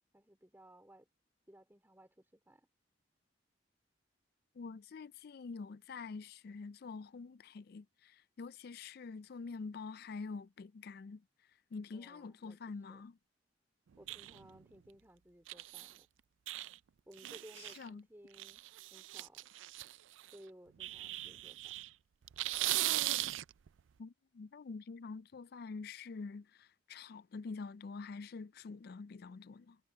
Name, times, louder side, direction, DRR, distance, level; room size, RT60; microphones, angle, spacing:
voice 1, 0.1-1.1 1.5-2.7 11.9-12.6 12.9-13.1 14.0-16.1 17.1-18.6 18.9-19.5 20.3-21.8, right 1 dB, 10° right, 2.9 m, -59 dB
voice 2, 4.6-11.2 11.7-13.2 17.6-18.0 24.0-29.8, left 4 dB, 55° left, 0.4 m, -46 dB
sound 1, 14.1-14.6 15.5-16.0 16.5-16.7 17.2-17.9 18.3-20.3 20.8-21.9 22.2-23.7, right 16 dB, 90° right, 0.4 m, -38 dB
head